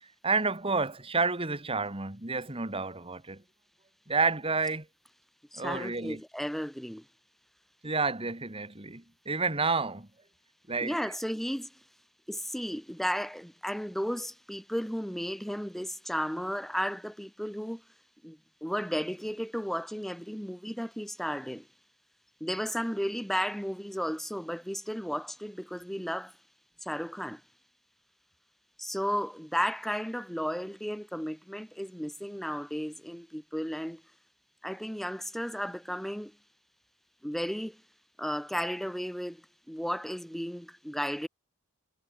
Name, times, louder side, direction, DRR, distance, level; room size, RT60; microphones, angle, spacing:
voice 1, 0.2-3.4 4.1-4.9 5.6-6.2 7.8-10.1 10.7-11.0, right 4 dB, 25° right, 2.0 m, -30 dB
voice 2, 5.5-7.1 10.8-11.8 12.3-17.8 18.2-21.7 22.4-26.4 26.8-27.4 28.8-34.0 34.6-36.4 37.2-37.8 38.2-41.3, equal, ahead, 1.4 m, -34 dB
head